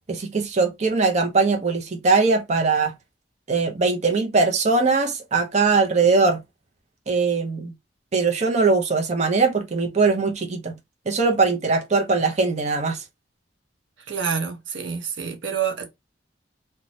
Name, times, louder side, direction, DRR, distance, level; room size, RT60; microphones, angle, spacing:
voice 1, 0.1-2.9 3.5-6.4 7.1-7.7 8.1-10.7 11.1-13.0, right 4 dB, 40° right, 0.5 m, -21 dB
voice 2, 14.1-15.9, right 7 dB, 90° right, 0.7 m, -27 dB
2.6 x 2.2 x 3.0 m
head